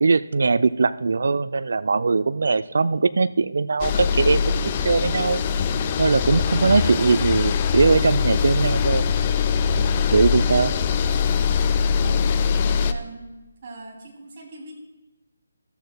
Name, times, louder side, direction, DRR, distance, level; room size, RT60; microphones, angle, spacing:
voice 1, 0.0-5.4 6.0-9.1 10.1-10.7, right 4 dB, 60° right, 14 dB, 0.4 m, -20 dB
sound 1, 3.8-12.9, left 6 dB, 30° left, 0.4 m, -22 dB
voice 2, 12.0-13.3 13.6-14.7, right 2 dB, 40° right, -1 dB, 2.7 m, -40 dB
14.0 x 12.0 x 2.2 m, 1.1 s
figure-of-eight pair, 150°, 0 cm